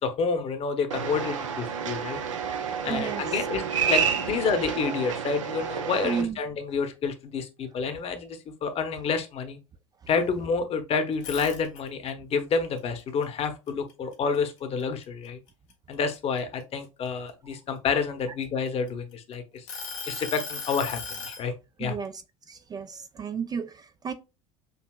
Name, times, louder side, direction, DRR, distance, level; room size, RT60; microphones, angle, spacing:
voice 1, 0.0-2.2 2.8-9.6 10.1-15.4 15.9-19.6 20.1-21.5 21.8-21.9, left 5 dB, 40° left, 1.0 m, -29 dB
sound 1, 0.9-6.2, right 7 dB, 80° right, 0.6 m, -29 dB
voice 2, 2.1-3.5 6.0-6.4 21.8-22.2 22.5-24.1, right 6 dB, 25° right, 0.4 m, -34 dB
sound 2, 11.1-12.1 12.5-14.4 14.8-15.0 15.5-17.3 18.0-19.1 19.7-21.4, left 4 dB, 65° left, 1.6 m, -37 dB
6.6 x 2.8 x 2.3 m
figure-of-eight pair, 70°, 16 cm